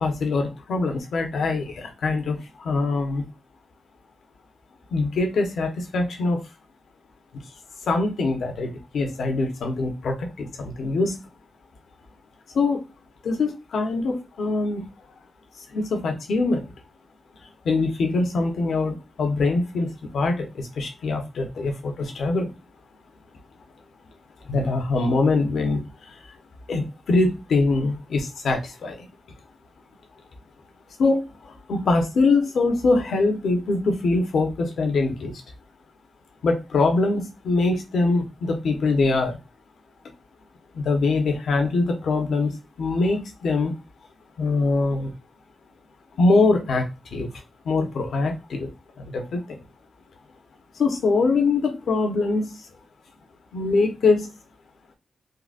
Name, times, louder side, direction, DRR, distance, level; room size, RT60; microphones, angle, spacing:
voice 1, 0.0-3.2 4.9-6.4 7.9-11.2 12.5-12.8 13.2-14.8 15.7-16.7 17.6-22.5 24.5-25.8 26.7-29.1 31.0-35.3 36.4-39.4 40.7-42.5 42.8-43.7 44.4-45.1 46.2-47.3 47.6-48.7 49.0-49.6 50.8-52.6 53.5-54.3, left 3 dB, 80° left, 0.8 m, -23 dB
3.8 x 2.2 x 2.4 m
wide cardioid pair, 115°, 0 cm